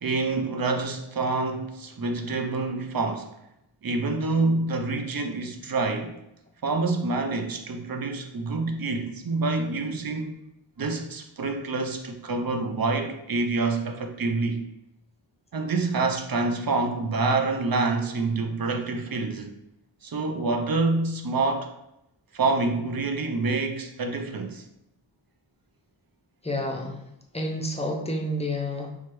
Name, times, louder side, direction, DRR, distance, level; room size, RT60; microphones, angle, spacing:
voice 1, 0.0-3.3 3.8-6.1 6.6-10.4 10.8-14.6 15.5-19.6 20.0-21.7 22.3-24.6, right 3 dB, 50° right, 0.6 m, -27 dB
voice 2, 26.4-27.0 27.3-28.9, left 1 dB, 15° left, 0.6 m, -29 dB
4.5 x 2.3 x 3.0 m
wide cardioid pair, 45°, 46 cm